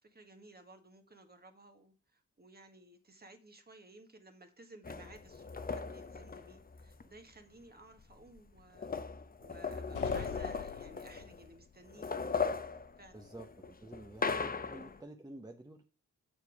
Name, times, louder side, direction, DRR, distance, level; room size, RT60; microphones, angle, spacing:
voice 1, 0.0-8.9 9.4-12.2 13.0-13.2, right 2 dB, 30° right, 1.7 m, -57 dB
sound 1, 4.8-7.0 8.0-8.1 8.4-11.5 11.9-15.0, left 5 dB, 30° left, 0.8 m, -38 dB
sound 2, 10.0-11.6, left 10 dB, 85° left, 0.9 m, -45 dB
voice 2, 13.1-15.8, right 1 dB, 15° right, 1.0 m, -50 dB
7.2 x 6.9 x 4.8 m
cardioid pair, 90°, 30 cm